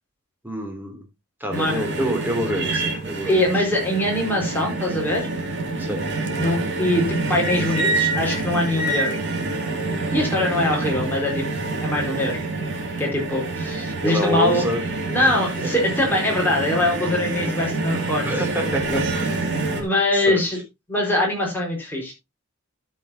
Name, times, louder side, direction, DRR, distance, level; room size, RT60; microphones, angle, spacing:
voice 1, 0.4-1.0 1.4-3.3 5.8-6.0 14.0-14.8 15.2-15.7 18.2-19.5 20.1-20.4, equal, 10° right, 3 dB, 3.1 m, -27 dB
voice 2, 1.5-1.8 3.3-5.3 6.4-9.2 10.1-11.4 11.8-12.4 13.0-14.6 15.1-18.3 19.8-20.6 20.9-22.1, left 1 dB, 10° left, -2 dB, 4.7 m, -22 dB
sound 1, 1.5-19.8, right 3 dB, 55° right, 2.6 m, -27 dB
13.0 x 7.8 x 2.8 m, 0.22 s
head